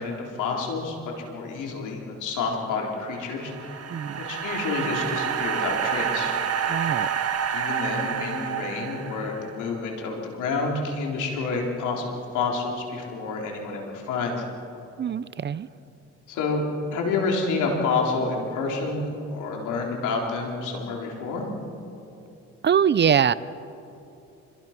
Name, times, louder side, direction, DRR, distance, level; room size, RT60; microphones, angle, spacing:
voice 1, 0.0-3.9 4.2-6.3 7.5-14.4 16.3-16.6 16.9-21.5, left 4 dB, 90° left, 0 dB, 4.0 m, -29 dB
sound 1, 3.2-9.6, right 8 dB, 55° right, 1.6 m, -28 dB
voice 2, 6.7-7.1 15.0-15.7 22.6-23.3, right 8 dB, 35° right, 18 dB, 0.6 m, -22 dB
26.5 x 22.0 x 6.0 m, 2.8 s
cardioid pair, 90°, 30 cm